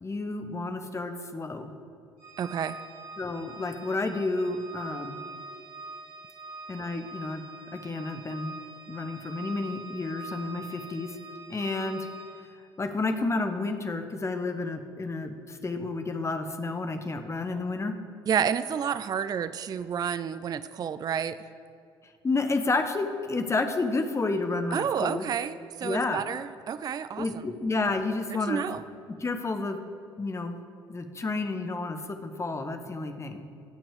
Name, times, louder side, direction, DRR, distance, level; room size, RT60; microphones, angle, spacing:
voice 1, 0.0-1.7 3.2-5.2 6.7-7.4 7.7-8.6 8.9-11.2 11.5-12.1 12.8-17.9 22.2-25.2 25.8-26.2 27.2-29.8 30.2-30.6 30.9-33.4, left 3 dB, 20° left, 7 dB, 1.1 m, -30 dB
Organ, 2.2-12.6, right 3 dB, 65° right, 3.0 m, -44 dB
voice 2, 2.4-2.8 18.3-21.4 24.7-27.4 28.5-28.8, right 8 dB, 30° right, 14 dB, 0.4 m, -30 dB
16.0 x 5.9 x 5.0 m, 2.4 s
figure-of-eight pair, 50°, 13 cm